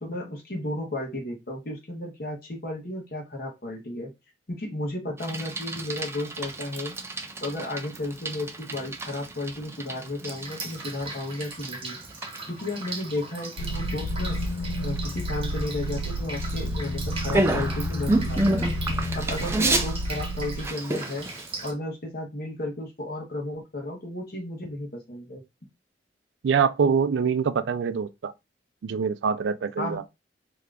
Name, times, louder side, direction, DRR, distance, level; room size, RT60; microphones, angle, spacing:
voice 1, 0.0-4.1 4.5-6.9 7.4-12.0 12.5-14.4 14.8-18.7 19.1-21.3 21.6-25.4 29.8-30.1, left 1 dB, 55° left, 1.1 m, -33 dB
Bicycle, 5.2-21.7, right 2 dB, 15° right, 0.4 m, -31 dB
Drip, 10.2-21.7, right 3 dB, 30° right, 0.8 m, -39 dB
sound 1, 13.6-20.7, equal, 85° left, 0.5 m, -30 dB
voice 2, 26.4-28.3 28.8-30.0, right 6 dB, 90° right, 0.4 m, -24 dB
2.8 x 2.5 x 3.3 m
head